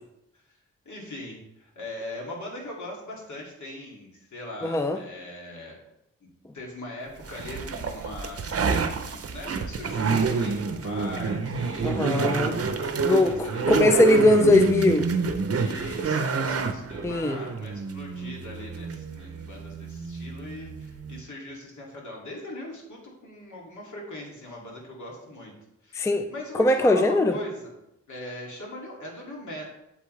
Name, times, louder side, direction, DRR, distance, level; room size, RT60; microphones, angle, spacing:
voice 1, 0.8-5.8 6.2-14.1 15.5-25.5 25.8-27.7 28.1-29.6, left 1 dB, 70° left, -2 dB, 2.5 m, -40 dB
voice 2, 4.6-5.0 11.8-12.6 13.0-15.1 17.0-17.4 25.9-26.3 26.6-27.4, left 2 dB, 10° left, 7 dB, 0.4 m, -21 dB
sound 1, 7.3-21.2, right 5 dB, 50° right, 0.7 m, -28 dB
8.2 x 7.6 x 3.2 m, 0.83 s
wide cardioid pair, 160°, 30 cm